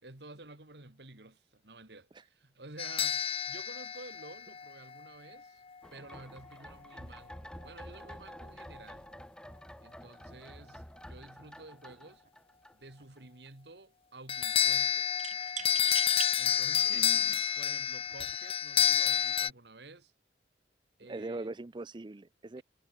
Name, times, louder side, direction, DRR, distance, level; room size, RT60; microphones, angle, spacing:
voice 1, 0.0-5.6 5.9-9.1 9.8-12.2 12.7-15.1 16.3-17.2 17.6-20.1 21.0-21.5 22.6-22.7, right 2 dB, 70° right, 2.6 m, -51 dB
sound 1, 2.8-5.0 14.3-19.5, left 9 dB, 35° left, 0.6 m, -29 dB
sound 2, 5.8-13.2 13.5-13.6, equal, 5° left, 1.3 m, -49 dB
sound 3, 12.1-12.3 12.6-13.3 15.2-16.3 17.0-17.1 18.0-18.4, right 8 dB, 45° right, 2.3 m, -42 dB
voice 2, 21.0-22.6, right 2 dB, 25° right, 0.5 m, -41 dB
head